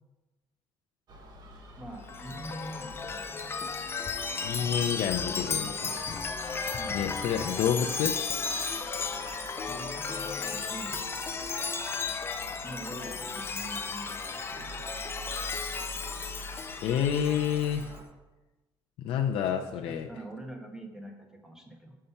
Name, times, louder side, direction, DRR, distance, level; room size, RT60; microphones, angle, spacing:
Gull seagull, 1.1-18.0, equal, 50° right, 1.3 m, -47 dB
voice 1, 1.8-3.5 6.8-7.0 9.7-11.1 12.6-14.9 19.6-22.0, right 1 dB, 5° right, 1 dB, 1.2 m, -44 dB
Chime, 2.0-17.9, left 5 dB, 25° left, 0.5 m, -34 dB
voice 2, 4.4-6.0 6.9-8.2 16.8-17.9 19.0-20.1, left 8 dB, 85° left, 3 dB, 0.5 m, -29 dB
6.5 x 5.6 x 5.7 m, 1.1 s
cardioid pair, 140°, 9 cm